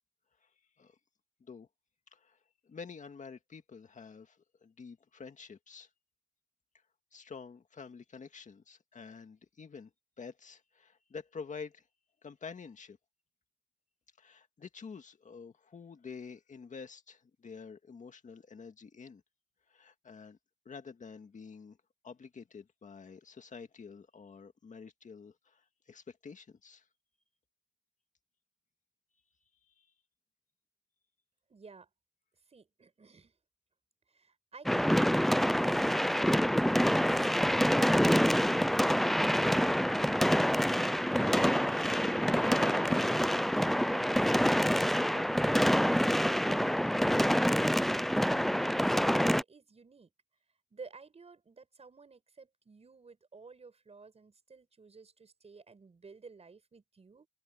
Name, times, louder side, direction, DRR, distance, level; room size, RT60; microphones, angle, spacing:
voice 1, 2.6-5.9 7.1-9.9 10.2-11.8 12.2-13.0 14.2-19.2 19.7-20.4 20.7-21.8 22.0-26.8 29.8-29.9, left 5 dB, 65° left, 1.8 m, -48 dB
voice 2, 31.5-31.9 32.5-33.3 34.1-36.4 48.2-50.1 50.7-57.3, right 4 dB, 50° right, 6.3 m, -53 dB
sound 1, 34.7-49.4, equal, ahead, 0.3 m, -27 dB
open air
wide cardioid pair, 140°, 14 cm